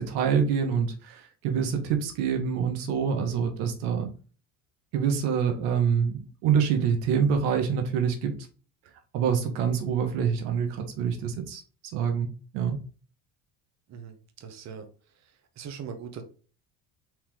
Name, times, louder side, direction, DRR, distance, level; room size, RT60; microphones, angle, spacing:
voice 1, 0.0-4.1 4.9-8.3 9.1-11.6 11.9-12.8, right 7 dB, 75° right, 1.4 m, -26 dB
voice 2, 13.9-14.9 15.6-16.2, right 7 dB, 45° right, 1.1 m, -40 dB
4.6 x 3.0 x 3.7 m
supercardioid pair, 85°, 37 cm